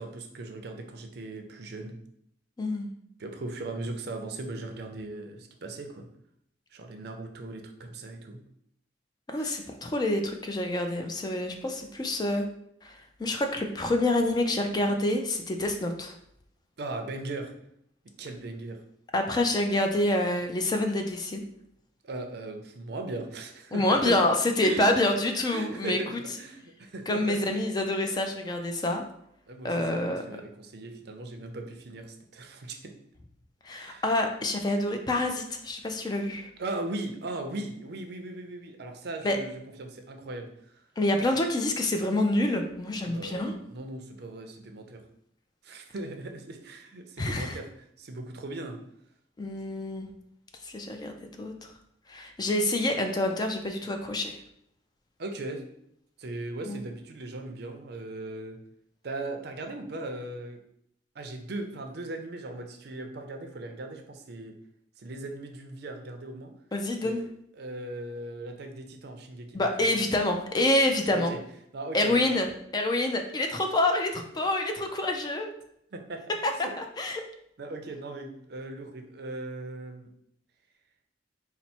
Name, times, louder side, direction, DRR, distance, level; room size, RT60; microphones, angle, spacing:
voice 1, 0.0-2.0 3.2-6.1 6.7-8.4 9.3-9.6 16.8-17.5 18.2-18.8 22.0-24.2 24.6-24.9 25.5-27.4 29.5-32.9 33.8-34.0 36.6-40.5 43.0-45.0 45.6-48.8 55.2-55.6 56.2-58.6 59.0-60.6 61.1-64.5 65.0-66.5 67.0-67.3 67.6-69.7 71.1-71.4 71.7-72.4 75.9-76.2 76.6-76.7 77.6-80.1, right 2 dB, 60° right, 5 dB, 0.5 m, -38 dB
voice 2, 2.6-2.9 9.3-12.5 12.8-16.1 19.1-21.4 23.7-26.0 27.1-29.1 29.6-30.2 33.6-36.5 39.2-39.4 41.0-43.5 47.2-47.6 49.4-50.1 50.6-51.5 52.1-54.4 56.7-56.8 66.7-67.2 69.5-71.3 71.9-72.5 72.7-75.5 76.4-77.2, left 1 dB, 20° left, 4 dB, 0.4 m, -27 dB
4.2 x 2.0 x 4.2 m, 0.72 s
head